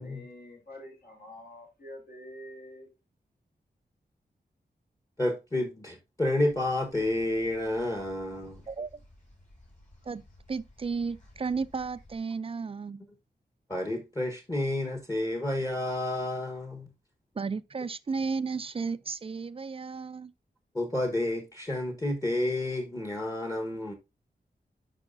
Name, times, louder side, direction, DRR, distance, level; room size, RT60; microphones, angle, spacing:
voice 1, 0.0-2.9, left 1 dB, 65° left, 3.0 m, -47 dB
voice 2, 5.2-8.6 13.7-16.9 20.7-23.9, left 1 dB, 20° left, 1.2 m, -30 dB
sound 1, 6.5-12.2, left 1 dB, 45° left, 4.2 m, -56 dB
voice 3, 8.7-9.0 10.1-10.2 10.5-13.0 17.4-20.3, right 5 dB, 35° right, 0.4 m, -33 dB
10.5 x 4.8 x 2.5 m
wide cardioid pair, 90°, 17 cm